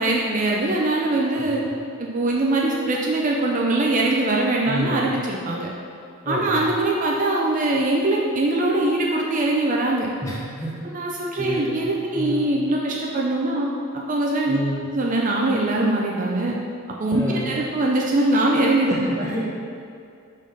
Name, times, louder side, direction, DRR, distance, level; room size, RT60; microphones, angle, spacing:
voice 1, 0.0-1.6 2.0-5.7 6.3-10.1 10.9-14.6 14.9-16.5 17.0-19.1, right 2 dB, 35° right, -2 dB, 0.4 m, -22 dB
voice 2, 1.3-1.7 4.6-5.1 6.2-6.7 10.2-10.7 11.4-11.9 12.1-12.5 14.5-14.9 17.1-17.6 18.9-19.4, equal, 15° left, -6 dB, 1.0 m, -29 dB
5.3 x 3.8 x 5.4 m, 2.4 s
head